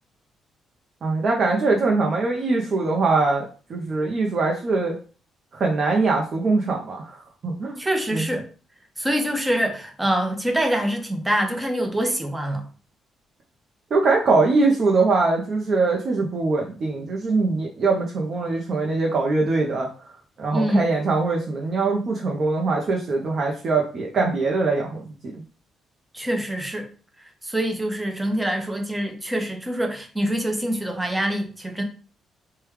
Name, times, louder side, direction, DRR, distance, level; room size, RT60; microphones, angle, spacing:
voice 1, 1.0-5.0 5.5-7.8 8.1-8.3 13.9-19.9 20.4-25.0, right 3 dB, 50° right, 0.6 m, -22 dB
voice 2, 7.8-8.4 9.0-12.7 20.5-20.9 26.1-26.9 27.4-31.8, right 1 dB, 10° right, 0.7 m, -25 dB
3.2 x 2.2 x 3.2 m
cardioid pair, 90°, 0 cm